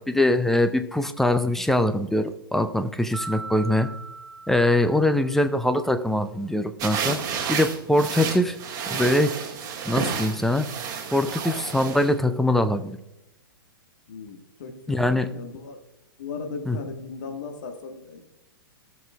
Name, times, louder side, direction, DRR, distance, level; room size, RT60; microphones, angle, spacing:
voice 1, 0.0-3.9 4.5-7.2 7.5-8.6 8.9-9.3 9.8-10.7 11.1-13.0 14.9-15.3 16.7-16.8, left 1 dB, 5° left, 9 dB, 0.5 m, -22 dB
Mallet percussion, 3.1-5.5, right 3 dB, 80° right, 0.6 m, -39 dB
sound 1, 6.8-12.1, right 6 dB, 30° right, 1.7 m, -31 dB
voice 2, 14.1-15.8 16.2-18.2, left 5 dB, 50° left, 4 dB, 1.4 m, -37 dB
17.5 x 6.1 x 2.3 m, 0.90 s
figure-of-eight pair, 110°, 12 cm